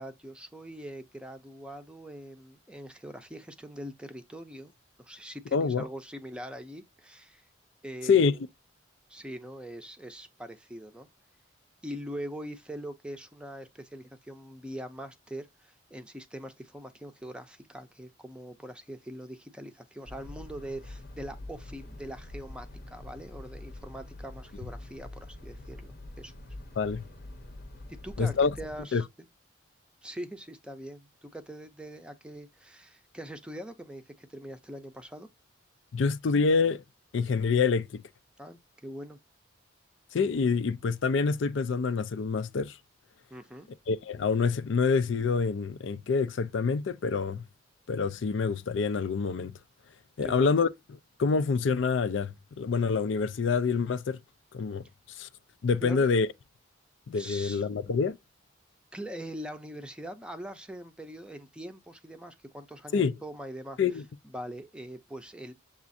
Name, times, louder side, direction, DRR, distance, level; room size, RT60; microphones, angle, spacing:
voice 1, 0.0-4.7 5.0-7.4 7.8-8.4 9.1-11.1 11.8-26.3 28.0-29.1 30.0-35.3 38.4-39.2 43.3-43.7 50.2-50.5 55.8-56.1 57.1-57.6 58.9-63.8 64.3-65.5, equal, 5° right, 0.5 m, -42 dB
voice 2, 5.5-5.9 8.0-8.3 26.8-27.0 28.2-28.5 28.9-29.0 35.9-36.8 37.1-38.0 40.1-42.8 43.9-47.4 47.9-49.5 50.2-54.2 54.5-54.8 55.2-55.3 55.6-56.3 57.1-58.2 62.9-63.1 63.8-64.0, left 5 dB, 65° left, 0.4 m, -26 dB
sound 1, 20.1-28.8, left 1 dB, 50° left, 0.8 m, -45 dB
7.1 x 2.4 x 2.6 m
head